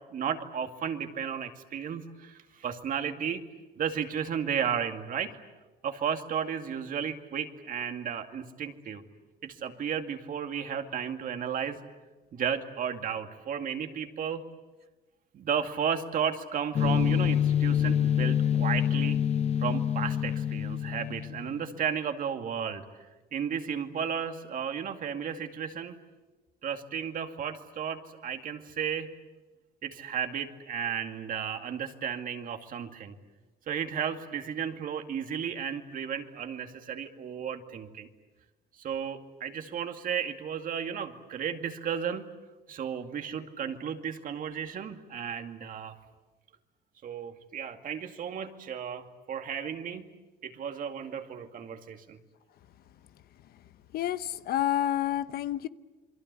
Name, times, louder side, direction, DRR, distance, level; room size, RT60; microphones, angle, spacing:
voice 1, 0.1-3.4 3.8-5.3 5.8-9.0 9.4-11.8 12.3-14.4 15.3-19.2 19.6-22.8 23.3-26.0 26.6-29.1 29.8-33.2 33.7-38.1 38.8-42.2 42.7-46.0 47.0-50.1 50.4-52.2, right 7 dB, 55° right, 2.3 m, -34 dB
sound 1, 16.7-21.6, left 9 dB, 40° left, 1.0 m, -26 dB
voice 2, 53.9-55.7, left 12 dB, 65° left, 0.9 m, -29 dB
28.0 x 22.5 x 8.4 m
cardioid pair, 110°, 17 cm